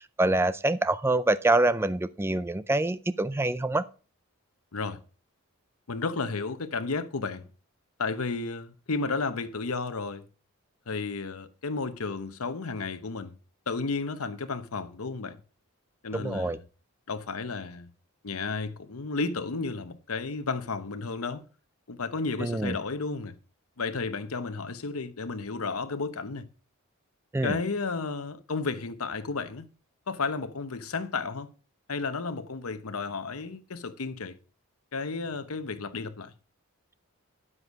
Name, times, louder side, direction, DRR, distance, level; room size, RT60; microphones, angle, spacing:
voice 1, 0.2-3.8 16.2-16.6 22.4-22.8 27.3-27.6, right 2 dB, 10° right, 0.4 m, -25 dB
voice 2, 5.9-7.5 8.0-10.3 10.9-13.3 13.7-15.4 16.0-16.6 17.1-17.9 18.2-21.4 21.9-23.3 23.8-26.5 27.4-29.7 30.1-31.5 31.9-34.4 34.9-36.3, left 4 dB, 85° left, 0.9 m, -32 dB
9.8 x 7.8 x 4.7 m
head